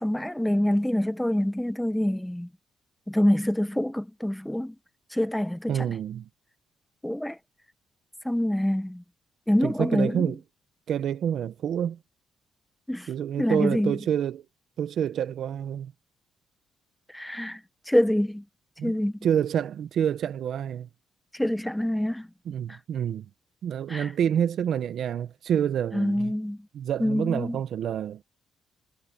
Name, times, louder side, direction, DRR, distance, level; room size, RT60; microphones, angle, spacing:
voice 1, 0.0-2.5 3.1-4.7 5.1-5.9 7.0-7.4 8.2-9.0 9.5-10.3 12.9-13.1 13.4-13.9 17.1-17.6 17.9-18.4 18.8-19.2 21.3-22.3 23.9-24.1 25.9-26.6 27.0-27.6, left 1 dB, 5° left, 1.4 m, -25 dB
voice 2, 5.7-6.3 9.6-10.4 10.9-12.0 13.1-14.5 14.8-15.9 18.8-18.9 19.2-20.9 22.4-23.3 23.6-26.3 26.7-28.2, right 9 dB, 70° right, 1.2 m, -28 dB
cardioid pair, 90°, 0 cm